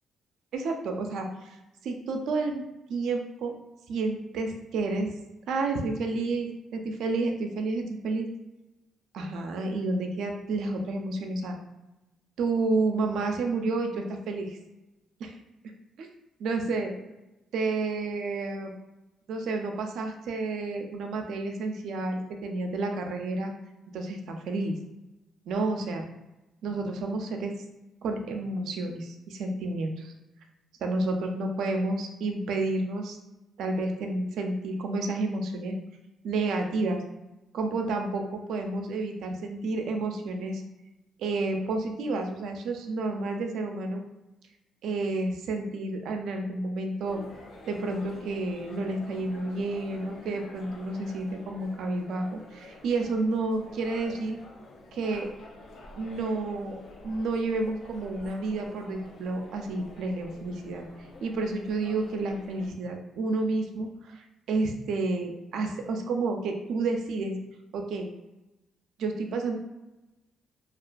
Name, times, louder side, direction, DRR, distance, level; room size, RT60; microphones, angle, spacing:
voice 1, 0.5-1.6 1.8-2.6 2.9-3.5 3.9-5.1 5.5-8.3 9.1-11.6 12.4-14.6 15.2-15.3 16.0-16.1 16.4-16.9 17.5-18.7 19.3-23.5 23.9-24.7 25.5-26.0 26.6-27.5 28.0-30.1 30.8-33.2 33.6-35.8 36.2-37.0 37.5-40.6 41.2-44.0 44.8-47.2 47.7-54.4 54.9-55.3 55.9-56.8 57.0-60.9 61.2-67.3 67.7-68.1 69.0-69.5, right 3 dB, 75° right, 4 dB, 0.4 m, -30 dB
sound 1, 47.1-62.7, left 2 dB, 65° left, 0.5 m, -48 dB
2.4 x 2.3 x 2.2 m, 1.0 s
cardioid pair, 90°, 0 cm